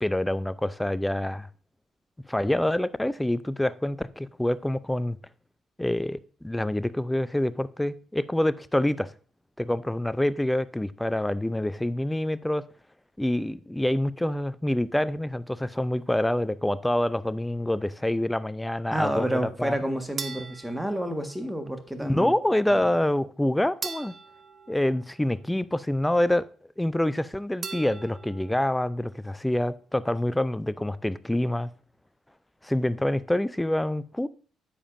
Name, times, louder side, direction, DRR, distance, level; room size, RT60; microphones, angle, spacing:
voice 1, 0.0-1.5 2.3-5.2 5.8-9.1 9.6-12.6 13.2-20.0 22.0-24.2 24.7-26.5 26.8-31.7 32.6-34.3, left 1 dB, 10° left, 0.5 m, -26 dB
voice 2, 18.9-22.3 22.7-22.9, right 1 dB, 5° right, 1.6 m, -30 dB
sound 1, 20.2-21.7 23.8-25.7 27.6-28.7, right 5 dB, 45° right, 0.8 m, -40 dB
9.8 x 7.1 x 2.6 m
hypercardioid pair, 50°, 0 cm